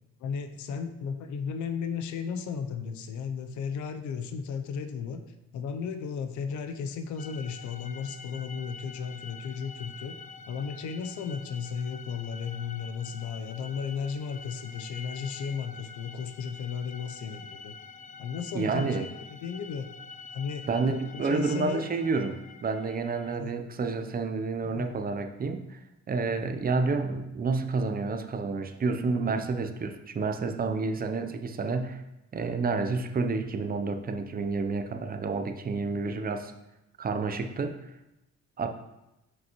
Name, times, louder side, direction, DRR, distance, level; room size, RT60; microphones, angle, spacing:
voice 1, 0.2-5.2 5.5-10.1 10.5-17.8 18.2-19.9 20.3-20.7 21.1-21.8 23.4-23.5 24.6-24.9, left 6 dB, 75° left, 8 dB, 0.6 m, -35 dB
sound 1, 7.2-23.4, left 5 dB, 25° left, 0.4 m, -46 dB
voice 2, 18.5-19.1 20.7-25.8 26.1-32.0 32.3-36.5 37.0-37.9 38.6-38.7, right 4 dB, 30° right, 7 dB, 0.6 m, -29 dB
6.0 x 5.2 x 3.0 m, 0.93 s
cardioid pair, 90°, 30 cm